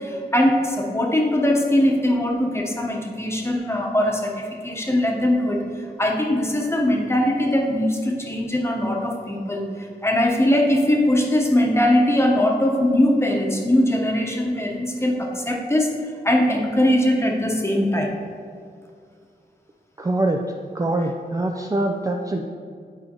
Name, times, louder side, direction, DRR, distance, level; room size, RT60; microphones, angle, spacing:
voice 1, 0.0-15.9 16.2-18.1, left 1 dB, 15° left, 0 dB, 1.0 m, -21 dB
voice 2, 20.0-20.4 20.7-22.4, right 2 dB, 20° right, 1 dB, 0.4 m, -23 dB
8.9 x 4.3 x 2.9 m, 2.3 s
cardioid pair, 55°, 17 cm